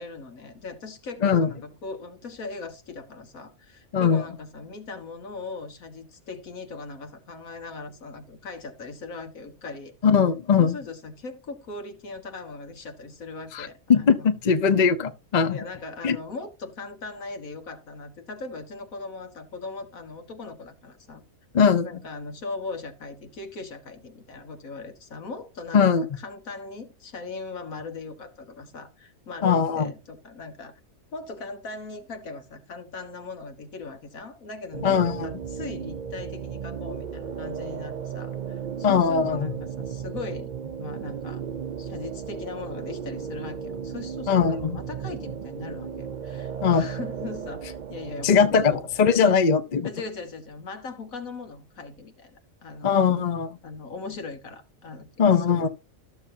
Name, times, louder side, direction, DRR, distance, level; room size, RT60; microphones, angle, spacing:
voice 1, 0.0-9.9 10.6-14.3 15.5-21.2 21.8-30.7 31.1-40.5 40.8-41.4 41.8-48.8 49.2-49.4 49.8-53.2 53.6-55.7, left 3 dB, 80° left, 2.0 m, -39 dB
voice 2, 3.9-4.2 10.0-10.8 13.5-15.6 16.0-16.2 21.5-21.9 25.7-26.1 29.4-29.9 34.8-35.3 38.8-39.5 44.3-44.8 46.6-46.9 48.2-49.9 52.8-53.5 55.2-55.7, left 6 dB, 40° left, 0.8 m, -20 dB
sound 1, 34.7-49.1, right 7 dB, 50° right, 0.6 m, -35 dB
14.0 x 7.1 x 2.7 m
omnidirectional pair, 1.4 m